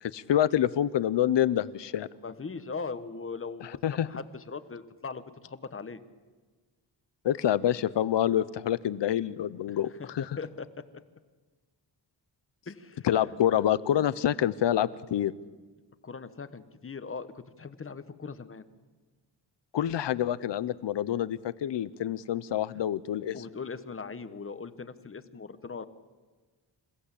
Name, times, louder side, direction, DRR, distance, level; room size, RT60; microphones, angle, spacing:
voice 1, 0.0-2.1 3.8-4.1 7.2-10.3 13.0-15.3 19.7-23.3, left 11 dB, 75° left, 18 dB, 0.8 m, -27 dB
voice 2, 2.2-6.0 9.7-11.0 12.7-13.3 16.0-18.6 22.7-22.8 23.3-25.8, left 4 dB, 30° left, 12 dB, 1.1 m, -40 dB
27.5 x 16.0 x 8.4 m, 1.4 s
wide cardioid pair, 135°, 43 cm